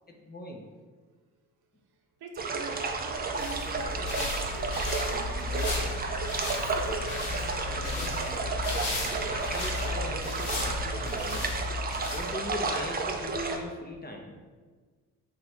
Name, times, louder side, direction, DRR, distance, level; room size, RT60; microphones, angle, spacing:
voice 1, 0.1-0.6 7.5-11.5 12.1-14.3, left 2 dB, 20° left, 1 dB, 0.6 m, -40 dB
voice 2, 2.2-4.7 5.1-5.7, right 4 dB, 55° right, 2 dB, 0.8 m, -44 dB
sound 1, 2.4-13.6, right 3 dB, 20° right, 0.5 m, -32 dB
sound 2, 3.1-12.6, left 2 dB, 85° left, 1.2 m, -35 dB
Crow, 3.6-9.9 11.3-11.5, left 5 dB, 65° left, 0.6 m, -46 dB
3.3 x 2.8 x 4.2 m, 1.4 s
hypercardioid pair, 50°, 45 cm